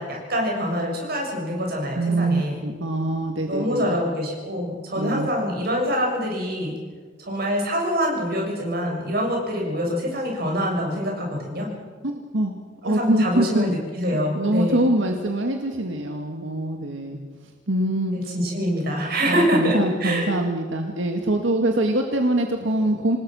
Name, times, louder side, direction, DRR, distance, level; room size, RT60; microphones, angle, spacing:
voice 1, 0.0-2.6 3.5-6.8 7.2-11.7 12.8-14.8 18.1-20.3, equal, 55° right, 0 dB, 6.9 m, -25 dB
voice 2, 2.0-4.0 5.0-5.3 12.0-12.5 12.8-13.7 14.3-17.2 17.7-18.2 19.3-23.2, right 1 dB, 90° right, 3 dB, 1.9 m, -24 dB
27.5 x 19.5 x 6.4 m, 1.5 s
head